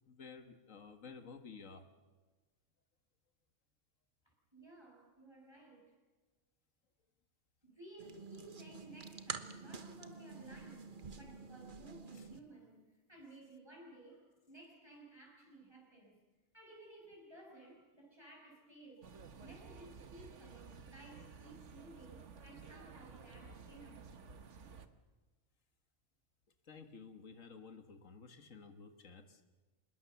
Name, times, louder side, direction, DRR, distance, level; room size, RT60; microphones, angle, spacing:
voice 1, 0.1-1.9 12.1-12.3 26.6-29.4, left 5 dB, 80° left, 8 dB, 1.9 m, -53 dB
voice 2, 4.2-6.0 7.6-16.2 16.5-24.1, right 2 dB, 20° right, -1 dB, 6.4 m, -57 dB
sound 1, 8.0-12.4, right 5 dB, 45° right, 1.2 m, -48 dB
sound 2, 19.0-24.9, right 5 dB, 65° right, 1.5 m, -54 dB
26.0 x 21.0 x 7.0 m, 1.3 s
omnidirectional pair, 1.3 m